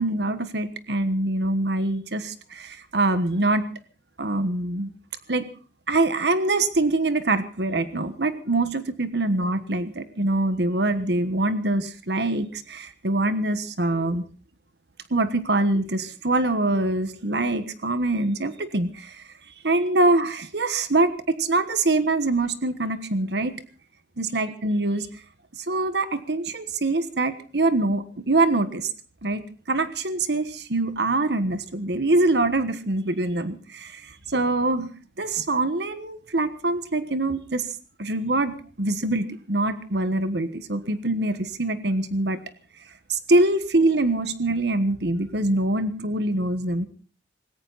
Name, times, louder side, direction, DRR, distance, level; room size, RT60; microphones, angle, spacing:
voice 1, 0.0-3.6 4.2-4.9 5.3-5.5 5.9-14.2 15.1-19.3 19.6-23.5 24.2-25.1 25.7-28.9 29.2-34.9 35.2-37.7 38.0-42.4 43.1-46.9, right 2 dB, 75° right, 11 dB, 1.3 m, -24 dB
19.5 x 18.0 x 4.1 m, 0.40 s
head